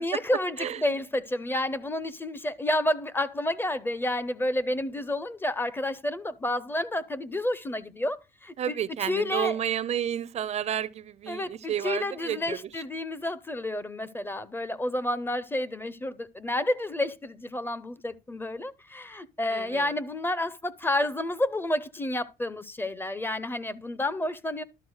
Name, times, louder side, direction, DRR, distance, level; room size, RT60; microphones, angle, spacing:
voice 1, 0.0-9.6 11.3-24.6, left 1 dB, 15° left, 0.5 m, -30 dB
voice 2, 8.6-12.6 19.5-19.9, right 10 dB, 40° right, 0.4 m, -31 dB
12.0 x 4.2 x 6.3 m
cardioid pair, 135°, 17 cm